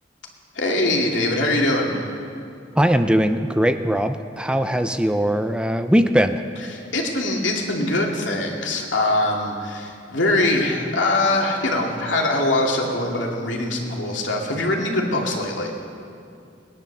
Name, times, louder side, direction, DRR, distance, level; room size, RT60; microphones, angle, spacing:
voice 1, 0.5-1.9 6.7-15.7, left 2 dB, 85° left, 0 dB, 2.5 m, -22 dB
voice 2, 2.8-6.4, equal, 5° right, 8 dB, 0.5 m, -20 dB
19.5 x 10.5 x 6.7 m, 2.5 s
head